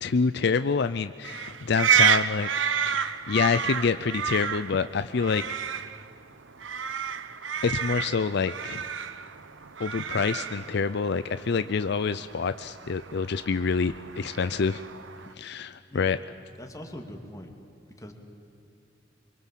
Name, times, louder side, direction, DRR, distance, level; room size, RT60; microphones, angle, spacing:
voice 1, 0.0-2.5 2.9-5.4 7.6-8.8 9.8-14.8 15.4-16.2, left 5 dB, 60° left, 12 dB, 0.5 m, -27 dB
sound 1, 1.2-15.3, right 8 dB, 80° right, 0.9 m, -30 dB
voice 2, 16.6-17.5 17.9-18.1, left 1 dB, 20° left, 4 dB, 2.3 m, -42 dB
25.0 x 23.5 x 7.4 m, 2.8 s
head